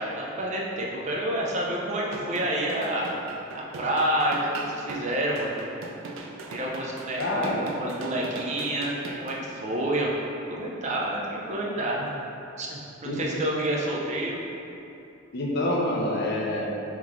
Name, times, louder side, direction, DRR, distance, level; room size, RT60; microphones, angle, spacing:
voice 1, 0.0-3.2 3.5-5.5 6.5-10.1 10.5-12.1 12.6-14.4, right 1 dB, 35° right, -3 dB, 0.5 m, -29 dB
sound 1, 2.0-9.4, right 2 dB, 85° right, 0.4 m, -40 dB
voice 2, 7.2-7.7 13.0-13.2 15.3-16.6, left 1 dB, 55° left, -2 dB, 0.6 m, -26 dB
3.6 x 3.0 x 3.6 m, 2.8 s
head